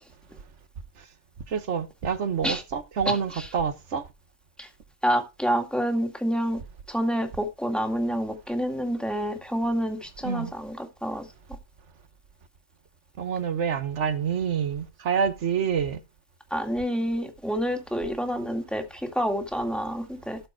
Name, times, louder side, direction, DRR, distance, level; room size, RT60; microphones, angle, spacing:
voice 1, 1.5-4.1 10.2-10.5 13.2-16.0, right 7 dB, 80° right, 1.5 m, -27 dB
voice 2, 5.0-6.6 6.9-11.3 16.5-20.4, equal, ahead, 2.1 m, -28 dB
13.0 x 5.0 x 4.5 m
omnidirectional pair, 1.2 m